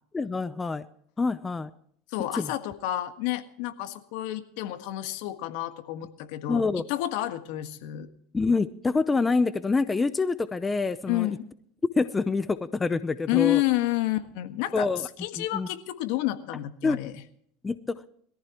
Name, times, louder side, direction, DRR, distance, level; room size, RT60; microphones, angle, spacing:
voice 1, 0.1-0.8 1.2-1.7 2.3-2.5 6.5-6.8 8.3-11.3 12.0-13.6 14.7-15.1 15.4-15.7 16.8-17.0 17.6-18.1, left 4 dB, 15° left, 13 dB, 0.7 m, -26 dB
voice 2, 2.1-6.6 6.9-8.1 11.1-11.4 13.3-14.9 15.2-17.1, left 15 dB, 65° left, 9 dB, 1.6 m, -29 dB
22.0 x 14.5 x 3.0 m, 0.64 s
supercardioid pair, 125°, 0 cm